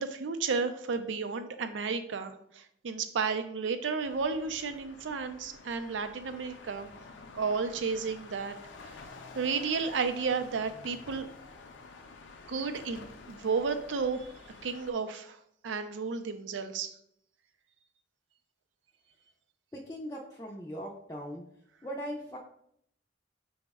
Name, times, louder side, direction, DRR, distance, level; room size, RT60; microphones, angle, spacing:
voice 1, 0.0-6.9 7.3-8.6 8.8-8.9 9.3-11.3 12.5-14.3 14.6-15.4 15.6-16.9, right 5 dB, 85° right, 9 dB, 0.4 m, -32 dB
sound 1, 4.0-14.9, left 3 dB, 80° left, 0.4 m, -50 dB
voice 2, 19.7-21.4 21.8-22.4, equal, 15° left, -3 dB, 0.4 m, -39 dB
5.8 x 2.1 x 3.4 m, 0.69 s
head